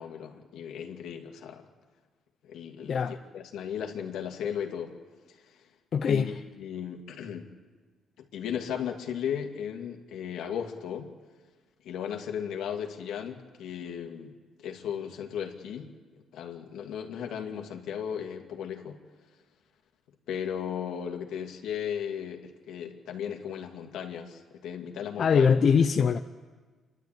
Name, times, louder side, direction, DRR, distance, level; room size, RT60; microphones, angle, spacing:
voice 1, 0.0-1.7 2.4-4.9 5.3-5.5 6.1-6.2 6.6-7.5 8.3-11.1 11.8-14.3 14.6-15.9 16.3-19.0 20.3-22.4 22.7-25.5, left 8 dB, 80° left, 3 dB, 2.3 m, -36 dB
voice 2, 2.8-3.2 5.9-6.3 25.2-26.2, left 6 dB, 55° left, 6 dB, 0.7 m, -22 dB
28.5 x 12.0 x 9.0 m, 1.4 s
cardioid pair, 90°, 0 cm